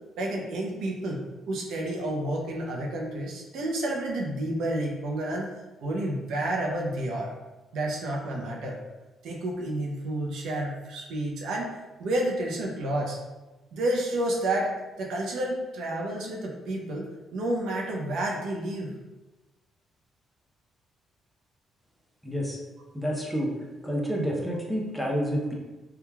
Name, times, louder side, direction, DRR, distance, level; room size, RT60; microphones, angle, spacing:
voice 1, 0.2-5.5 5.8-7.3 7.7-8.8 9.2-11.7 12.0-13.2 13.7-18.9, right 1 dB, 80° right, -1 dB, 0.5 m, -30 dB
voice 2, 22.2-22.6 22.9-23.6 23.8-25.5, equal, ahead, -2 dB, 0.6 m, -29 dB
3.0 x 2.2 x 2.2 m, 1.1 s
cardioid pair, 90°, 0 cm